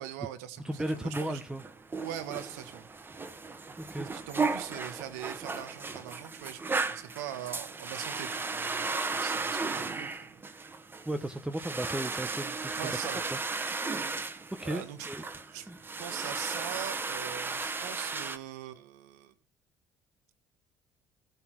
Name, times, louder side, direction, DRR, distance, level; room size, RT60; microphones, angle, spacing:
voice 1, 0.0-1.4 2.0-2.9 4.1-6.6 6.9-10.4 12.8-13.2 14.6-15.1 15.5-15.7 16.0-19.3, right 11 dB, 80° right, 9 dB, 1.4 m, -42 dB
voice 2, 0.6-1.6 3.8-4.1 11.0-13.0 13.3-13.7 14.6-15.2 15.6-15.8, right 1 dB, 10° right, 7 dB, 1.1 m, -35 dB
sound 1, 0.7-18.4, right 4 dB, 25° right, 1.6 m, -35 dB
16.0 x 5.7 x 6.2 m, 0.38 s
hypercardioid pair, 65°, 8 cm